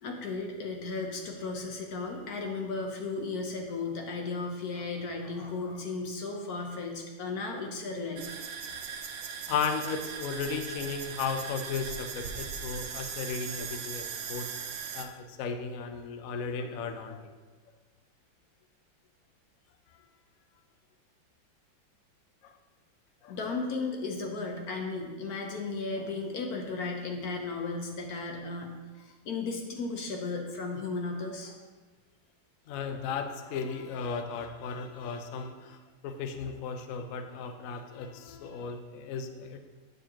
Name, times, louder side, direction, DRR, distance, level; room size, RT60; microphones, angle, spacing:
voice 1, 0.0-8.3 23.3-31.6, left 3 dB, 60° left, 2 dB, 1.1 m, -35 dB
sound 1, 8.2-15.0, right 7 dB, 75° right, 1.3 m, -39 dB
voice 2, 9.5-17.3 22.4-22.6 23.2-23.4 32.7-39.6, left 5 dB, 80° left, 6 dB, 0.7 m, -35 dB
9.2 x 6.7 x 2.9 m, 1.3 s
omnidirectional pair, 2.2 m